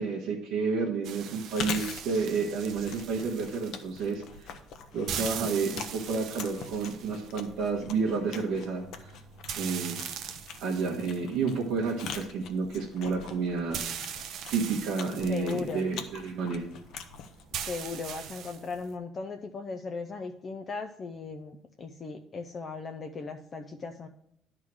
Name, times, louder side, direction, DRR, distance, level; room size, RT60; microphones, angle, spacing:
voice 1, 0.0-4.5 4.9-9.2 9.6-10.0 10.6-13.8 14.5-16.7, right 4 dB, 85° right, -4 dB, 1.3 m, -30 dB
sound 1, 1.0-18.9, right 8 dB, 55° right, 0.7 m, -42 dB
Chewing mastication, 1.3-18.2, left 7 dB, 60° left, 0.8 m, -43 dB
voice 2, 15.3-15.9 17.7-24.1, left 4 dB, 30° left, 4 dB, 0.5 m, -37 dB
11.0 x 3.7 x 6.1 m, 0.75 s
cardioid pair, 170°, 0 cm